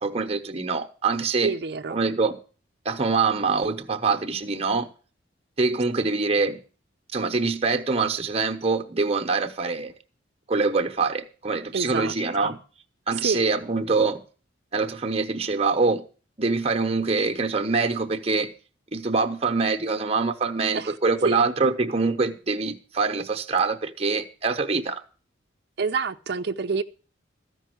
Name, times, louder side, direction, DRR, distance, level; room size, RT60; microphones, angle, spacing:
voice 1, 0.0-1.5 1.9-2.4 2.8-4.9 5.6-6.6 7.1-9.9 10.5-12.6 13.1-14.2 14.7-16.0 16.4-18.5 18.9-25.0, right 4 dB, 35° right, 1.0 m, -24 dB
voice 2, 1.4-2.0 6.0-6.1 11.7-12.5 13.1-13.4 20.7-21.0 21.2-21.4 25.8-26.8, right 4 dB, 60° right, 0.6 m, -28 dB
14.0 x 5.4 x 7.9 m
head